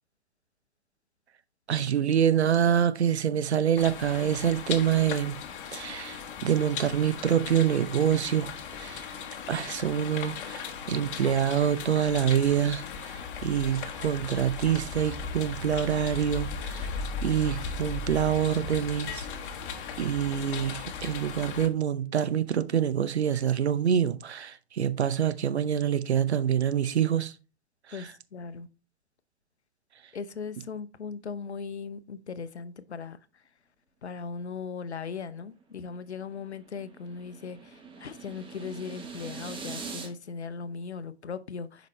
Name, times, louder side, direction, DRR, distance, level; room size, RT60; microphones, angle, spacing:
voice 1, 1.7-5.4 5.7-9.1 9.5-19.3 20.0-27.4 27.9-28.1, right 9 dB, 80° right, 0.7 m, -26 dB
sound 1, 3.8-21.7, left 5 dB, 50° left, 1.2 m, -37 dB
voice 2, 27.9-28.7 30.1-33.2 34.0-41.9, left 5 dB, 85° left, 0.7 m, -38 dB
sound 2, 35.8-40.1, right 5 dB, 15° right, 1.2 m, -43 dB
7.4 x 5.2 x 3.1 m
figure-of-eight pair, 110°, 33 cm